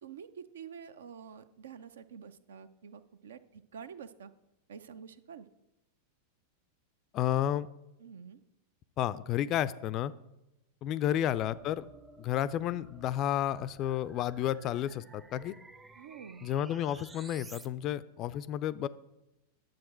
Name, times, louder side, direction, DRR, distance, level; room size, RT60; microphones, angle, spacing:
voice 1, 0.0-4.3 4.7-5.5 8.0-8.4 16.0-16.5, right 7 dB, 65° right, 13 dB, 0.5 m, -48 dB
voice 2, 7.1-7.7 9.0-10.1 10.8-11.9 12.2-15.5 16.4-18.9, left 11 dB, 35° left, 17 dB, 0.4 m, -31 dB
sound 1, 11.3-17.7, right 3 dB, 15° right, 0.6 m, -54 dB
10.5 x 7.6 x 4.4 m, 0.91 s
figure-of-eight pair, 90°, 0 cm